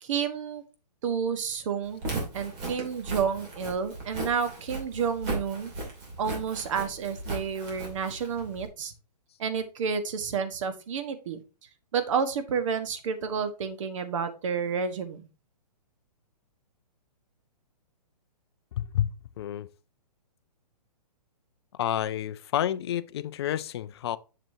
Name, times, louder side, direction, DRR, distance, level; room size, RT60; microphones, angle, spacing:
voice 1, 0.0-0.6 1.0-2.0 2.3-5.7 6.2-8.9 9.4-11.4 11.9-15.2, right 6 dB, 50° right, 1.3 m, -30 dB
Walk footsteps, 1.9-8.7, right 2 dB, 25° right, 2.7 m, -37 dB
voice 2, 18.8-19.7 21.8-24.2, left 11 dB, 40° left, 0.4 m, -30 dB
7.6 x 6.7 x 2.7 m
hypercardioid pair, 150°, 21 cm